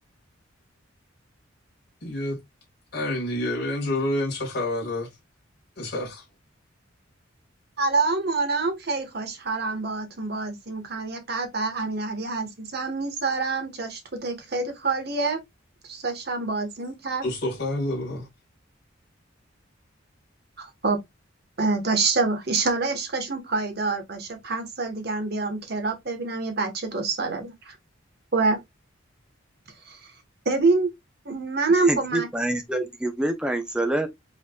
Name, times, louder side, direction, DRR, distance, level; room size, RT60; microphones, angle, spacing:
voice 1, 2.0-2.4 2.9-5.1 5.8-6.2 17.2-18.3, left 1 dB, 50° left, 2.0 m, -28 dB
voice 2, 7.8-15.4 15.8-17.2 20.6-21.0 21.6-27.8 28.3-28.6 29.9-30.1 30.4-30.9 31.2-32.3, right 3 dB, 50° right, 1.2 m, -26 dB
voice 3, 31.8-34.1, right 1 dB, 5° right, 0.6 m, -26 dB
4.9 x 4.0 x 2.3 m
head